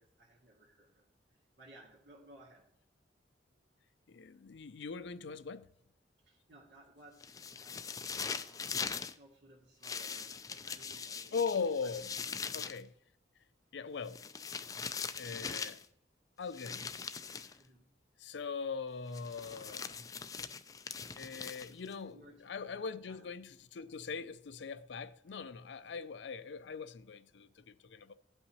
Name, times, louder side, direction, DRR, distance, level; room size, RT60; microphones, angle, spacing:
voice 1, 0.0-2.7 6.2-8.0 8.4-11.4 11.8-11.9 12.4-12.7 17.6-17.9 21.7-21.8 22.1-23.3 23.7-23.8 25.9-26.0, right 1 dB, 75° right, 2.0 m, -60 dB
voice 2, 4.1-5.7 11.3-12.2 12.5-12.9 13.7-14.2 15.2-15.8 16.4-17.0 18.2-20.0 21.2-28.1, left 5 dB, 80° left, 0.5 m, -40 dB
sound 1, 7.2-9.1 9.8-12.8 14.1-15.9 16.5-17.6 19.1-21.9, left 6 dB, 20° left, 0.3 m, -41 dB
16.5 x 5.5 x 2.8 m
head